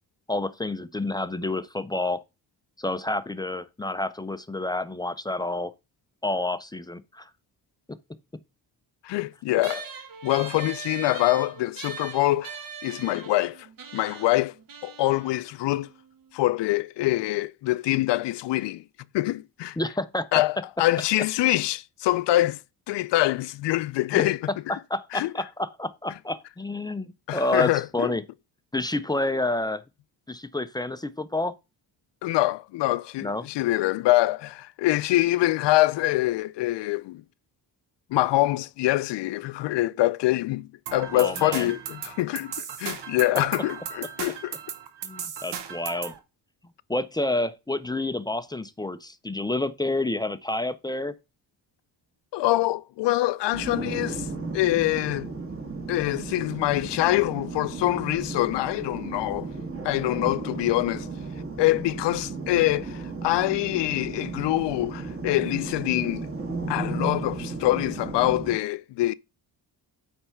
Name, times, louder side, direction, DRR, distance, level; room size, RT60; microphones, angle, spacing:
voice 1, 0.3-2.2 2.8-5.7 6.2-7.3 19.8-20.3 24.1-24.3 24.9-28.2 28.7-29.8 30.3-31.5 33.2-33.5 41.1-41.7 45.0-46.1 46.9-51.2, left 2 dB, 10° left, 0.3 m, -29 dB
voice 2, 9.0-9.9 10.2-12.6 12.8-13.7 13.9-14.6 14.8-15.9 16.3-18.8 19.1-19.8 20.3-22.6 22.9-24.5 25.1-25.3 27.3-28.1 32.2-37.2 38.1-44.6 52.3-54.3 54.5-55.3 55.9-59.5 59.8-61.1 61.6-66.3 66.7-69.1, left 17 dB, 90° left, 0.5 m, -25 dB
sound 1, 9.6-16.4, right 6 dB, 55° right, 1.2 m, -41 dB
sound 2, 40.9-46.2, right 8 dB, 85° right, 1.2 m, -36 dB
sound 3, 53.5-68.5, right 3 dB, 35° right, 1.7 m, -34 dB
8.9 x 3.4 x 5.5 m
cardioid pair, 125°, 41 cm